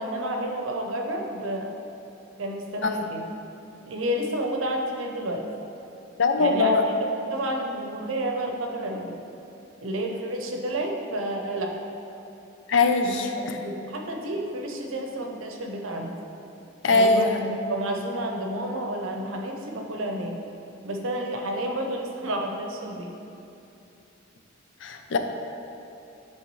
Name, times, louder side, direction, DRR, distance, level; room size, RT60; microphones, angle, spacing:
voice 1, 0.0-1.8 2.4-3.2 3.9-5.5 6.4-6.7 7.3-9.2 9.8-11.7 13.0-13.2 13.5-16.2 16.9-20.4 20.8-23.1, right 1 dB, 75° right, 2 dB, 0.7 m, -30 dB
voice 2, 6.2-6.9 12.7-13.6 16.8-17.4 24.8-25.2, left 3 dB, 65° left, 6 dB, 0.4 m, -21 dB
9.5 x 3.5 x 3.1 m, 2.8 s
head